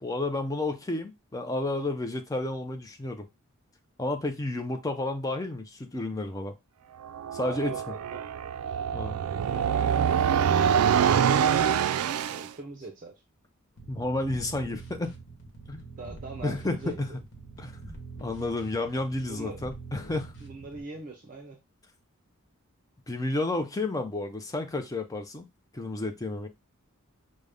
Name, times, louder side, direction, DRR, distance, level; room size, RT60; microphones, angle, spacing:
voice 1, 0.0-3.3 4.0-6.5 7.3-7.8 8.9-9.2 13.9-15.1 15.7-15.8 16.4-17.1 17.6-17.8 18.2-20.3 23.1-25.4 25.7-26.5, left 2 dB, 15° left, 0.4 m, -31 dB
sound 1, 7.0-12.5, right 8 dB, 90° right, 0.3 m, -25 dB
voice 2, 7.4-8.3 8.6-9.9 12.3-13.1 15.9-17.2 19.3-19.6 20.4-21.6, right 3 dB, 40° right, 0.5 m, -43 dB
sound 2, 13.8-20.8, right 3 dB, 55° left, 1.1 m, -44 dB
5.1 x 2.1 x 3.4 m
head